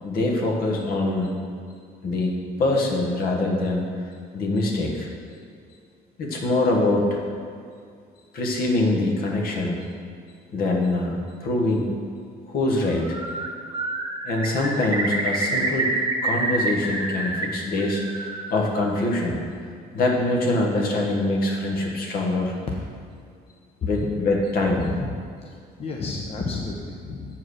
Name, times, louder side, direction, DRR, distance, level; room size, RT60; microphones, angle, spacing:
voice 1, 0.0-1.3 2.0-3.9 4.3-5.1 6.2-7.2 8.3-9.9 10.5-11.9 12.5-13.2 14.2-15.9 16.2-19.4 19.9-22.5 23.8-24.9, left 2 dB, 60° left, 0 dB, 1.5 m, -24 dB
Bird, 12.9-13.5 13.7-17.5 17.8-18.6, right 3 dB, 20° right, 1.0 m, -27 dB
voice 2, 24.7-25.1 25.4-25.5 25.8-27.4, left 3 dB, 35° left, -1 dB, 0.8 m, -31 dB
7.6 x 4.7 x 6.4 m, 2.3 s
cardioid pair, 110°, 17 cm